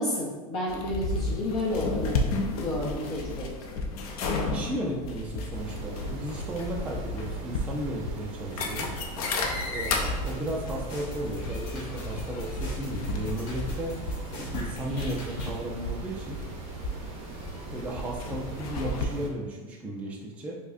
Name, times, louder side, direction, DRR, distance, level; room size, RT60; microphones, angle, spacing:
voice 1, 0.0-2.2 2.5-3.5, left 1 dB, 35° left, -5 dB, 0.7 m, -31 dB
sound 1, 0.7-19.1, left 2 dB, 80° left, 0.5 m, -33 dB
voice 2, 4.3-8.9 9.7-14.0 14.4-16.4 17.2-17.4 17.7-20.6, right 1 dB, 5° right, -2 dB, 0.3 m, -35 dB
sound 2, 5.5-19.3, right 3 dB, 35° right, 0.6 m, -40 dB
sound 3, 8.8-15.6, left 2 dB, 55° left, 1.0 m, -42 dB
4.6 x 2.1 x 2.6 m, 1.3 s
supercardioid pair, 140°, 19 cm